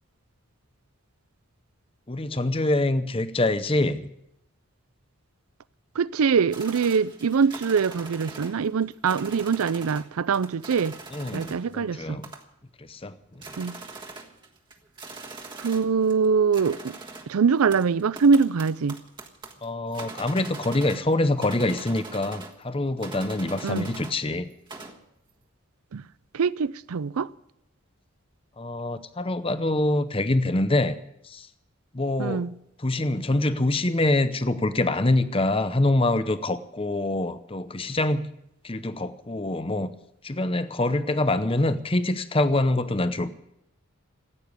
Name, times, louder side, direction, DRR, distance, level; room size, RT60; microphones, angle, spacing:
voice 1, 2.1-4.1 11.1-12.3 12.8-13.4 19.6-24.5 28.6-30.9 31.2-31.5 31.9-32.5 32.8-38.3 38.6-39.9 40.2-43.3, left 2 dB, 25° left, 0.7 m, -25 dB
voice 2, 5.9-11.0 11.3-12.2 13.6-13.8 15.6-17.0 17.3-19.0 23.6-23.9 25.9-26.0 26.3-27.3 32.2-32.5, right 5 dB, 85° right, 0.5 m, -23 dB
sound 1, 6.5-10.1 10.3-11.7 12.2-12.7 13.0-13.1 13.3-16.3 16.5-21.1 21.4-22.6 23.0-24.2 24.5-25.0, right 3 dB, 20° right, 1.5 m, -42 dB
15.0 x 9.1 x 9.6 m
head